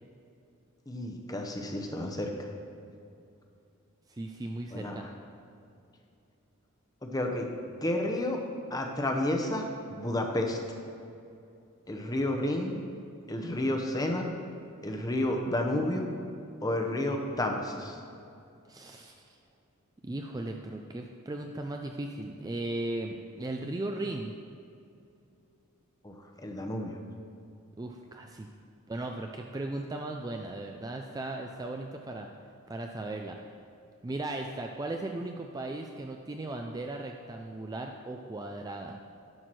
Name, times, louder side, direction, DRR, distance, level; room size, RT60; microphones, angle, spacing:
voice 1, 0.9-2.5 4.7-5.1 7.0-7.5 7.8-8.4 8.7-10.6 11.9-12.8 13.3-14.2 14.8-16.0 16.6-18.0 26.0-26.1 26.4-26.9, left 1 dB, 15° left, 2 dB, 0.8 m, -31 dB
voice 2, 4.1-5.1 18.7-19.4 20.0-24.3 27.8-28.5 28.9-32.3 32.7-33.4 34.0-39.0, right 2 dB, 15° right, 3 dB, 0.3 m, -37 dB
11.0 x 4.6 x 6.1 m, 2.6 s
head